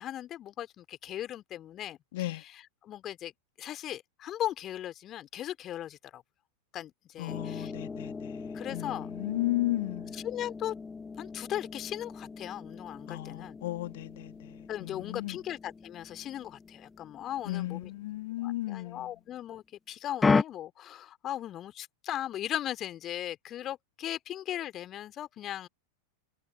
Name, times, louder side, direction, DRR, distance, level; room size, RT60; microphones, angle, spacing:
voice 1, 0.0-3.3 3.6-6.2 6.7-7.7 8.5-9.1 10.1-10.7 11.2-13.6 14.7-17.9 18.4-25.7, left 12 dB, 30° left, 2.8 m, -38 dB
voice 2, 2.1-2.4 7.2-10.2 13.1-15.4 17.4-19.1, left 16 dB, 55° left, 2.2 m, -35 dB
sound 1, 7.3-18.8 20.2-20.4, left 4 dB, 15° left, 0.9 m, -36 dB
figure-of-eight pair, 90°, 0 cm